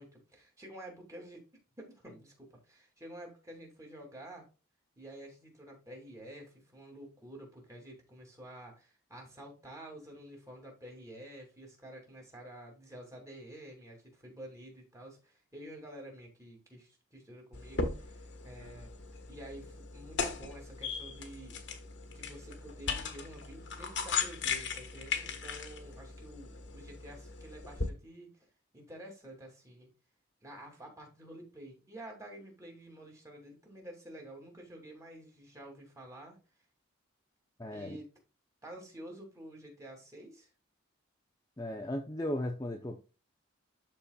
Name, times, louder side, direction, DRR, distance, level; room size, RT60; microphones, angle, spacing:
voice 1, 0.0-1.4 1.8-4.5 5.0-18.9 19.3-21.6 22.0-28.5 28.7-29.9 30.4-36.4 37.7-38.1 38.6-40.5, right 1 dB, 15° right, 2.6 m, -50 dB
sound 1, 17.5-27.9, left 5 dB, 55° left, 1.4 m, -38 dB
voice 2, 37.6-38.0 41.6-43.0, left 1 dB, 15° left, 0.7 m, -36 dB
12.5 x 4.3 x 2.3 m
head